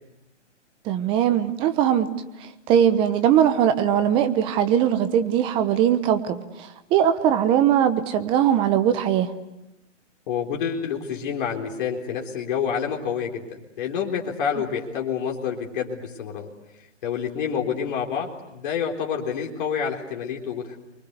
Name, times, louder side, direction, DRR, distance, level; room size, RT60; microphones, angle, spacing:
voice 1, 0.8-2.1 2.4-9.3, right 9 dB, 15° right, 9 dB, 1.0 m, -20 dB
voice 2, 10.3-16.5 17.0-20.8, left 7 dB, 40° left, 0 dB, 4.0 m, -28 dB
29.0 x 24.0 x 8.2 m, 0.94 s
hypercardioid pair, 160°, 37 cm